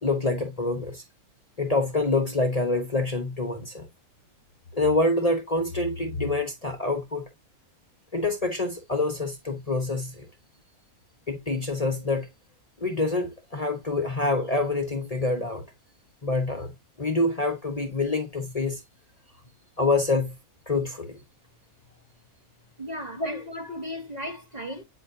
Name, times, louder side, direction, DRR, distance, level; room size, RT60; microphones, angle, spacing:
voice 1, 0.0-1.0 1.6-3.9 4.7-7.2 8.1-10.3 11.3-12.3 12.8-15.6 16.2-16.7 17.0-18.8 19.8-20.4 20.7-21.2 23.2-23.4, left 2 dB, 30° left, 1.0 m, -26 dB
voice 2, 22.8-24.8, left 1 dB, 30° right, 1.1 m, -36 dB
9.0 x 4.4 x 2.6 m
omnidirectional pair, 1.5 m